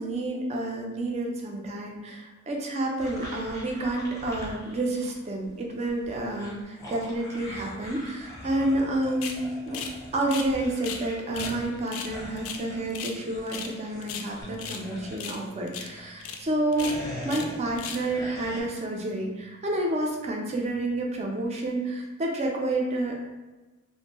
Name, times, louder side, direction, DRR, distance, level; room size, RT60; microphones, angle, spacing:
voice 1, 0.0-9.8 10.1-23.3, right 1 dB, 30° right, 0 dB, 0.4 m, -29 dB
sound 1, 3.0-5.2 5.4-16.1 16.5-18.6, left 1 dB, 15° left, 0.6 m, -42 dB
sound 2, 9.2-9.4 9.7-10.0 10.2-11.0 11.3-11.6 11.9-13.2 13.5-13.7 14.0-14.8 15.2-15.4 15.7-15.9 16.2-16.4 16.7-17.5 17.8-18.1, left 6 dB, 75° left, 0.3 m, -37 dB
sound 3, 14.4-20.7, equal, 80° right, 1.2 m, -52 dB
2.5 x 2.1 x 2.9 m, 1.2 s
head